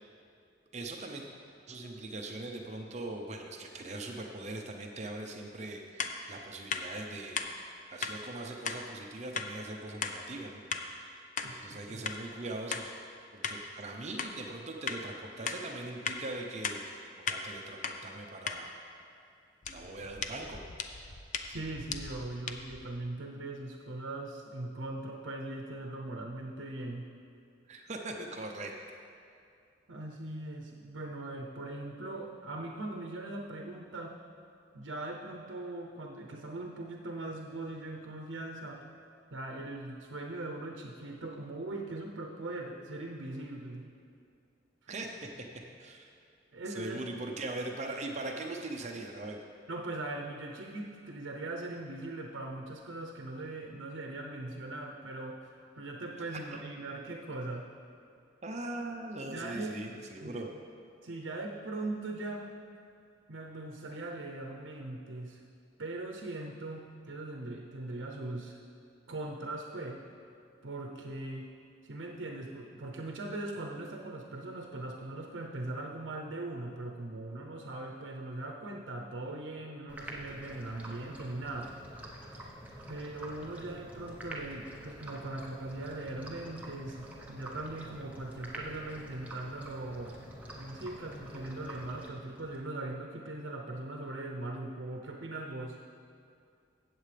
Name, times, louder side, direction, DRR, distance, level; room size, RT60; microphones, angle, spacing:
voice 1, 0.7-1.3 1.7-7.5 7.9-10.6 10.9-12.9 13.3-16.8 17.2-18.8 19.7-20.6 27.7-28.8 44.9-45.3 45.8-46.1 46.7-49.4 58.4-60.5, right 2 dB, 35° right, 2 dB, 0.6 m, -41 dB
sound 1, 6.0-6.2 6.7-6.9 7.4-7.5 8.0-8.2 8.7-8.8 9.3-9.5 10.0-10.2 10.7-10.9 11.4-11.5 12.1-12.2 12.7-12.9 13.4-13.6 14.2-14.3 14.9-15.0 15.5-15.6 16.1-16.2 16.6-16.8 17.3-17.4 17.8-18.0 18.5-18.6 19.6-22.9, left 6 dB, 40° left, 0.5 m, -36 dB
voice 2, 11.4-12.0 21.5-27.1 29.9-34.2 34.7-38.9 39.3-43.9 46.5-47.0 49.7-57.7 59.3-59.8 60.2-60.4 61.0-62.5 63.3-65.4 65.8-68.6 69.1-70.0 70.6-71.5 71.8-81.8 82.9-90.2 90.5-95.8, right 2 dB, 75° right, 1 dB, 0.7 m, -40 dB
sound 2, 79.9-92.6, right 1 dB, 10° right, 1.0 m, -47 dB
16.0 x 7.5 x 3.4 m, 2.4 s
head